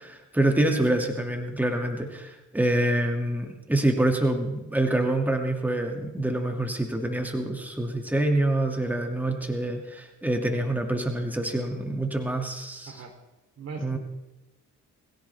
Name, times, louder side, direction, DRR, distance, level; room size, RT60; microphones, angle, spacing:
voice 1, 0.0-13.0 13.8-14.0, right 1 dB, 5° right, 2 dB, 2.4 m, -26 dB
voice 2, 13.6-14.0, right 4 dB, 60° right, 4 dB, 3.4 m, -39 dB
22.5 x 16.0 x 3.5 m, 1.0 s
cardioid pair, 90°, 30 cm